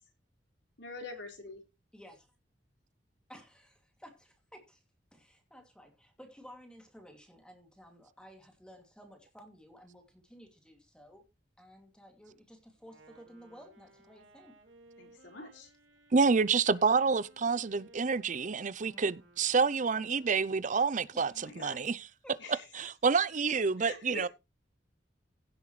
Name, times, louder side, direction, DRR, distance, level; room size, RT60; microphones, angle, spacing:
voice 1, 0.8-1.6 15.0-15.7 21.3-21.8 22.4-22.7 23.8-24.3, left 2 dB, 90° left, 4.4 m, -45 dB
voice 2, 1.9-2.3 3.3-4.8 5.1-11.2 11.6-14.5 18.8-19.1 21.1-21.4 22.2-22.4, equal, 5° left, 2.5 m, -54 dB
Wind instrument woodwind instrument, 12.8-20.7, right 2 dB, 80° right, 4.5 m, -60 dB
voice 3, 16.1-22.0 22.8-24.3, right 5 dB, 45° right, 0.6 m, -28 dB
16.0 x 7.9 x 3.2 m
head